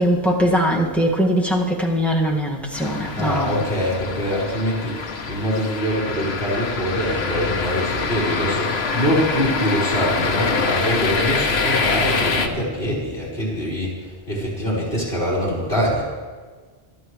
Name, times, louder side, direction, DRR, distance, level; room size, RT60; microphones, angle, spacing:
voice 1, 0.0-3.6, equal, ahead, -3 dB, 1.9 m, -21 dB
sound 1, 2.7-12.5, left 4 dB, 80° left, 1.3 m, -25 dB
voice 2, 3.1-16.0, equal, 65° left, -7 dB, 4.3 m, -24 dB
22.5 x 13.0 x 3.3 m, 1.5 s
omnidirectional pair, 1.1 m